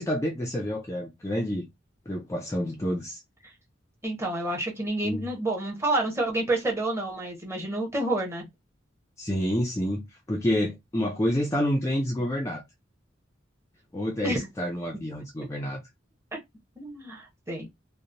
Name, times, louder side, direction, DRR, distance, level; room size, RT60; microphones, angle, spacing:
voice 1, 0.0-1.7 2.1-3.2 5.0-5.2 9.2-12.6 13.9-15.8, equal, 15° left, 0.4 m, -28 dB
voice 2, 4.0-8.5 14.2-14.4 16.8-17.7, right 2 dB, 15° right, 0.8 m, -29 dB
2.8 x 2.0 x 2.5 m
head